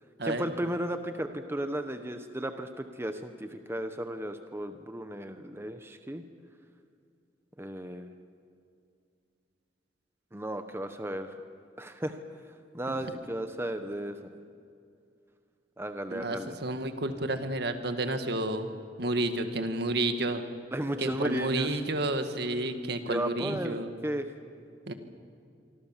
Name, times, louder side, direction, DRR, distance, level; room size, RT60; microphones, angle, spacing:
voice 1, 0.2-6.2 7.6-8.1 10.3-11.4 11.8-12.2 12.7-14.3 15.8-16.5 20.7-21.8 23.1-24.3, right 1 dB, 15° right, 8 dB, 1.0 m, -34 dB
voice 2, 16.1-18.7 19.0-20.4 21.0-23.9 24.9-25.0, right 2 dB, 60° right, 7 dB, 1.9 m, -30 dB
26.0 x 25.0 x 7.4 m, 2.4 s
head